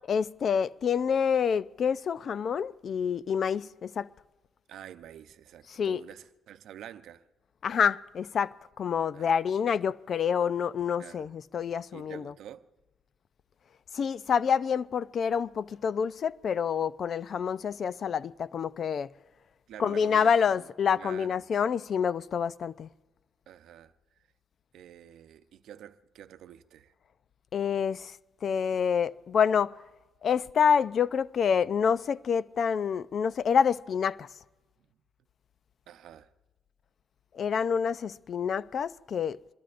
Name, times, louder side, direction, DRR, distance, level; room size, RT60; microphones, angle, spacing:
voice 1, 0.1-4.1 5.7-6.0 7.6-12.4 13.9-19.1 19.8-22.9 27.5-28.2 28.4-29.8 30.2-34.3 37.3-39.4, left 7 dB, 55° left, 0.5 m, -27 dB
voice 2, 4.7-7.2 9.1-9.3 11.0-11.3 11.9-12.7 19.7-20.7 20.9-21.3 23.5-23.9 24.7-26.9 35.9-36.3, right 10 dB, 80° right, 0.7 m, -48 dB
26.0 x 21.5 x 2.6 m
cardioid pair, 90°, 0 cm